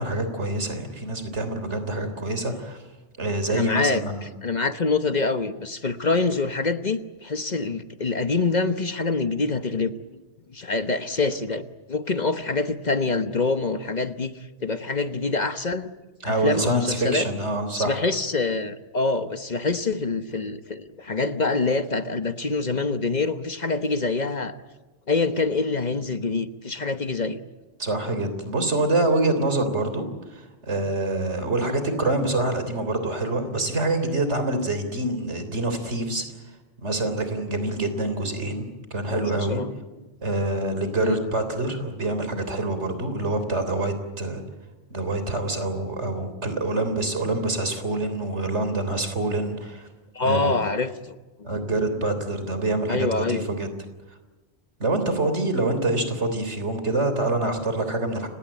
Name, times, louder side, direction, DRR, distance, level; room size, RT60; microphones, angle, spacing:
voice 1, 0.0-2.8 3.2-4.3 16.2-18.0 27.8-36.3 36.8-39.6 40.2-44.4 44.9-49.9 50.2-50.6 51.4-53.7 54.8-58.3, right 2 dB, 80° right, 9 dB, 3.8 m, -26 dB
voice 2, 3.5-10.2 10.5-15.9 16.2-17.3 17.7-24.6 25.1-27.4 31.6-31.8 39.1-39.7 40.6-41.2 50.1-51.7 52.9-53.5, left 3 dB, 40° left, 10 dB, 1.1 m, -26 dB
30.0 x 17.5 x 8.9 m, 1.2 s
omnidirectional pair, 1.2 m